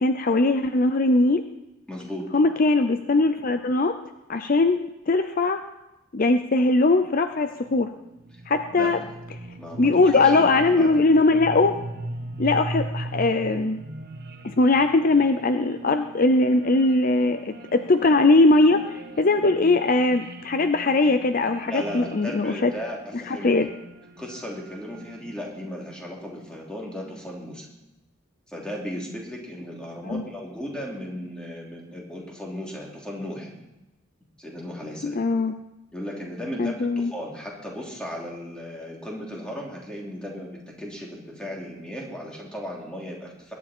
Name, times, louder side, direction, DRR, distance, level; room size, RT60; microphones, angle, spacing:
voice 1, 0.0-1.4 2.3-4.0 4.3-5.6 6.1-7.9 8.5-9.0 9.8-11.8 12.4-13.8 14.4-22.7 23.3-23.7 30.0-30.2 35.0-35.5 36.6-37.1, left 2 dB, 45° left, 8 dB, 0.6 m, -20 dB
voice 2, 1.9-2.2 8.7-9.1 9.6-11.0 21.6-23.5 24.2-27.6 28.5-33.5 34.4-35.2 35.9-43.5, equal, 5° left, -3 dB, 3.1 m, -36 dB
sound 1, 7.5-25.9, right 2 dB, 50° right, 1.2 m, -39 dB
21.5 x 10.0 x 4.4 m, 0.97 s
head